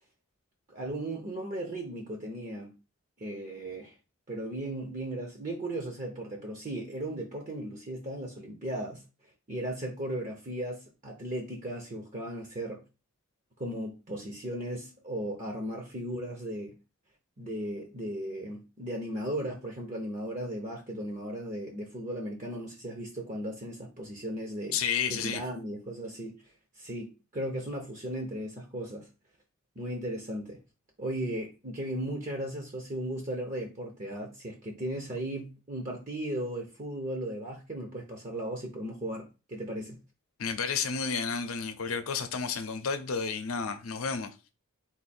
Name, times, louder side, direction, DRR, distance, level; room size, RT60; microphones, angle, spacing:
voice 1, 0.7-2.7 3.2-3.9 4.3-9.0 9.5-12.8 13.6-16.8 17.4-24.8 25.1-26.3 26.8-29.1 29.8-30.6 31.0-40.0, right 1 dB, 35° right, 0.7 m, -36 dB
voice 2, 24.7-25.4 40.4-44.3, left 6 dB, 70° left, 0.7 m, -31 dB
4.2 x 2.6 x 4.2 m
head